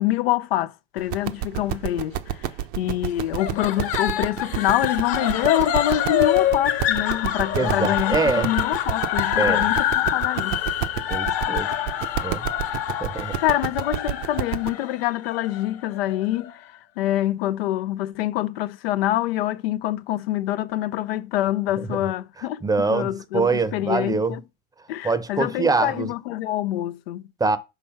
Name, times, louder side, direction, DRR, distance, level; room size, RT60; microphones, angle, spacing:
voice 1, 0.0-2.4 2.8-10.6 13.4-24.4 24.9-27.2, left 13 dB, 90° left, 0.5 m, -26 dB
sound 1, 1.0-14.7, right 12 dB, 60° right, 0.7 m, -29 dB
sound 2, 3.4-16.5, left 11 dB, 55° left, 1.3 m, -26 dB
voice 2, 7.5-8.5 9.4-9.7 11.1-11.7 12.2-12.5 13.0-13.3 21.9-22.0 22.6-24.4 25.0-26.1 27.4-27.6, right 4 dB, 15° right, 0.7 m, -24 dB
5.8 x 3.2 x 5.8 m
supercardioid pair, 110°, 29 cm